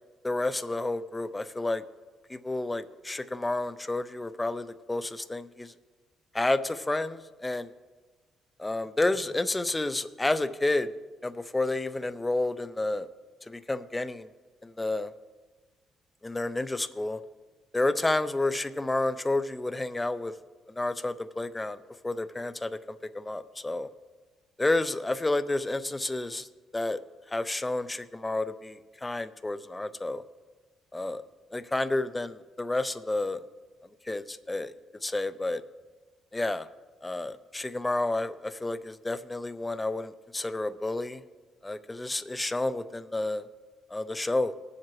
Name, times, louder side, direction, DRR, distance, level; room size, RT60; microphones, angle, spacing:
voice 1, 0.2-1.8 2.3-5.7 6.3-7.7 8.6-10.9 11.2-13.1 13.4-14.3 14.6-15.1 16.2-17.2 17.7-20.3 20.8-23.9 24.6-26.5 26.7-27.0 27.3-30.2 30.9-31.2 31.5-33.4 34.0-34.7 35.0-35.6 36.3-36.7 37.0-41.2 41.6-43.5 43.9-44.5, left 2 dB, 15° left, 11 dB, 0.4 m, -30 dB
19.0 x 7.4 x 3.1 m, 1.3 s
cardioid pair, 120°, 0 cm